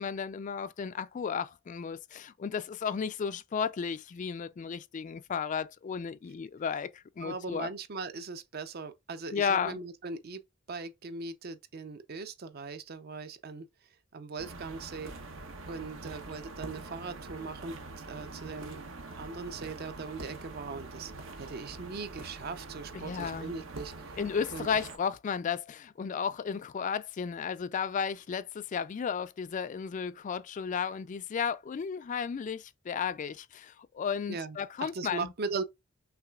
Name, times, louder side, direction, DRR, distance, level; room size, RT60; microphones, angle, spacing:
voice 1, 0.0-7.7 9.3-9.8 22.9-23.5 24.2-35.3, left 6 dB, 40° left, 0.3 m, -34 dB
voice 2, 7.2-10.4 10.7-13.7 14.1-15.1 15.7-17.8 18.1-18.8 19.2-21.1 21.4-24.1 24.5-24.7 34.3-35.6, right 4 dB, 50° right, 0.6 m, -39 dB
sound 1, 14.4-25.0, right 2 dB, 75° right, 0.9 m, -44 dB
5.8 x 3.3 x 2.3 m
head